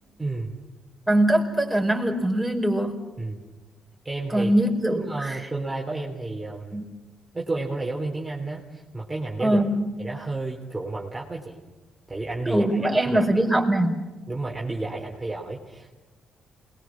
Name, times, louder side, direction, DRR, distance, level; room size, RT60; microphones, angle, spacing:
voice 1, 0.2-0.5 3.2-3.4 4.0-4.5 4.9-6.8 7.3-9.6 10.0-11.6 12.1-13.4 14.3-15.9, right 2 dB, 15° right, -3 dB, 3.6 m, -31 dB
voice 2, 1.1-3.0 4.3-5.4 6.7-6.8 9.4-9.9 12.5-14.1, right 1 dB, ahead, 0 dB, 5.1 m, -22 dB
28.0 x 21.5 x 6.2 m, 1.2 s
cardioid pair, 90°, 0 cm